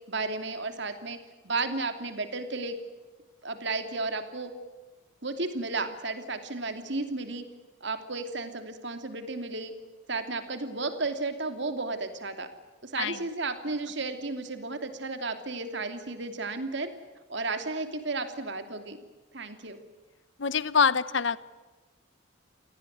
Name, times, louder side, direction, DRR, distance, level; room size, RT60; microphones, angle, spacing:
voice 1, 0.1-1.2 1.4-2.7 3.4-4.5 5.2-7.4 7.8-9.7 10.1-12.5 12.8-16.9 17.3-19.0 19.3-19.8, right 3 dB, 55° right, 8 dB, 2.8 m, -33 dB
voice 2, 20.4-21.4, left 6 dB, 60° left, 17 dB, 0.9 m, -25 dB
28.0 x 18.5 x 9.4 m, 1.2 s
head